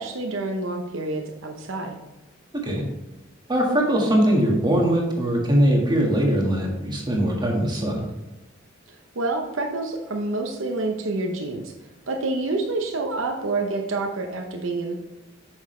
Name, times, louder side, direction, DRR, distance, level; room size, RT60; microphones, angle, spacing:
voice 1, 0.0-2.0 8.9-11.7 12.1-14.9, right 2 dB, 75° right, 3 dB, 0.8 m, -28 dB
voice 2, 3.5-8.0, right 1 dB, 20° right, -2 dB, 1.7 m, -21 dB
8.5 x 6.3 x 3.2 m, 1.0 s
head